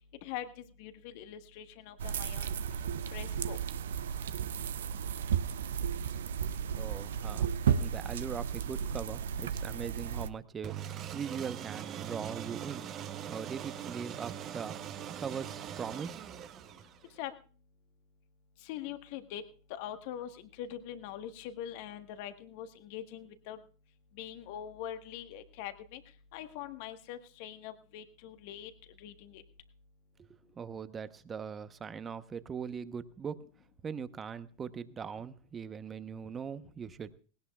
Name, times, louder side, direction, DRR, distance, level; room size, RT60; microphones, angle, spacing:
voice 1, 0.2-2.6 3.1-3.6 17.2-17.4 18.6-19.4 19.7-23.6 24.2-26.0 26.3-28.7 29.0-29.4, left 10 dB, 60° left, 9 dB, 1.4 m, -43 dB
sound 1, 2.0-10.3, right 7 dB, 75° right, 0.6 m, -34 dB
voice 2, 6.8-7.5 7.8-12.9 13.3-14.8 15.2-16.3 30.2-30.3 30.5-33.4 33.8-37.1, right 6 dB, 25° right, 13 dB, 0.9 m, -40 dB
sound 2, 10.6-17.2, right 9 dB, 40° right, 1.2 m, -41 dB
19.5 x 17.5 x 2.4 m, 0.38 s
hypercardioid pair, 95°, 0 cm